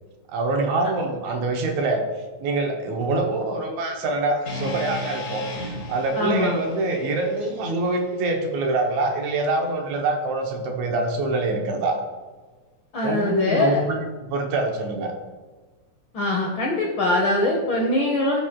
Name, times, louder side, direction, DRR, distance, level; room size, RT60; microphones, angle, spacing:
voice 1, 0.3-2.0 2.4-12.0 13.0-15.1, right 2 dB, 75° right, 3 dB, 2.1 m, -25 dB
sound 1, 4.5-8.6, left 2 dB, 35° left, 1.8 m, -36 dB
voice 2, 6.2-6.6 12.9-13.8 16.1-18.4, left 2 dB, 90° left, 0 dB, 1.0 m, -22 dB
15.0 x 5.1 x 2.2 m, 1.3 s
omnidirectional pair, 3.5 m